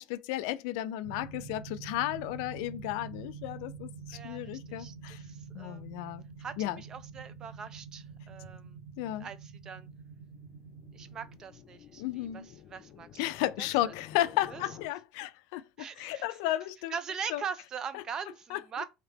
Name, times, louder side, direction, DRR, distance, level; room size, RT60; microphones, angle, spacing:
voice 1, 0.0-5.2 5.5-6.2 6.6-6.8 9.0-9.3 12.0-12.5 13.2-16.9 17.3-17.4 18.5-18.6, left 14 dB, 90° left, 0.3 m, -33 dB
sound 1, 1.0-11.3, right 5 dB, 85° right, 1.6 m, -46 dB
voice 2, 4.1-5.9 6.4-8.8 9.2-9.9 10.9-13.2 13.6-13.9 14.5-14.6 15.8-16.4 16.9-18.8, right 6 dB, 30° right, 0.4 m, -42 dB
sound 2, 9.8-14.9, left 9 dB, 45° left, 0.6 m, -52 dB
3.4 x 2.8 x 3.9 m
cardioid pair, 150°, 2 cm